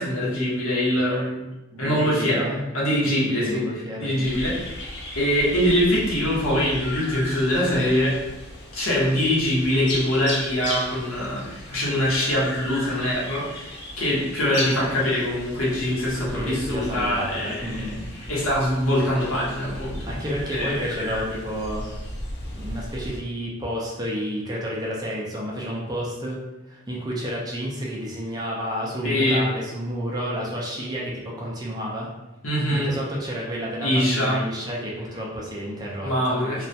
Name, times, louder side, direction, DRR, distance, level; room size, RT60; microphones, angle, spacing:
voice 1, 0.0-1.4 1.8-2.4 2.7-3.6 4.0-4.8 5.1-8.1 8.7-18.0 18.3-20.1 20.5-20.8 29.0-29.4 32.4-32.9 33.8-34.4 36.0-36.7, equal, 80° left, -6 dB, 0.9 m, -23 dB
voice 2, 1.7-2.6 3.1-4.3 16.3-18.0 20.1-21.8 22.5-26.4 26.7-32.1 32.7-36.4, equal, 20° right, -4 dB, 0.4 m, -30 dB
sound 1, 4.2-23.2, left 1 dB, 55° left, 0.5 m, -36 dB
2.2 x 2.1 x 2.6 m, 1.0 s
head